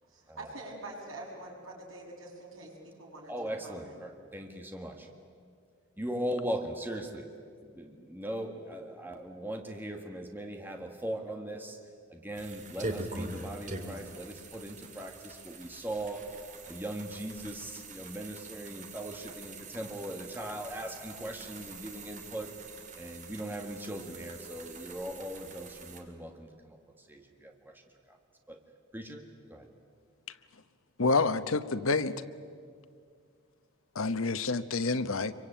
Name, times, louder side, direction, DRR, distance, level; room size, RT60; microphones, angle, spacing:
voice 1, 0.0-3.3 3.6-4.0, right 2 dB, 80° right, -1 dB, 6.9 m, -45 dB
voice 2, 3.3-5.1 6.0-7.3 7.6-11.8 12.1-16.3 16.7-22.5 22.9-26.8 27.1-27.7 28.1-28.2 28.5-28.6 28.9-29.7, right 1 dB, 10° right, 3 dB, 1.8 m, -39 dB
sound 1, 12.3-26.0, right 2 dB, 35° right, 2.5 m, -44 dB
voice 3, 31.0-32.2 33.9-35.3, left 3 dB, 85° left, 12 dB, 1.0 m, -28 dB
26.5 x 23.5 x 9.0 m, 2.2 s
head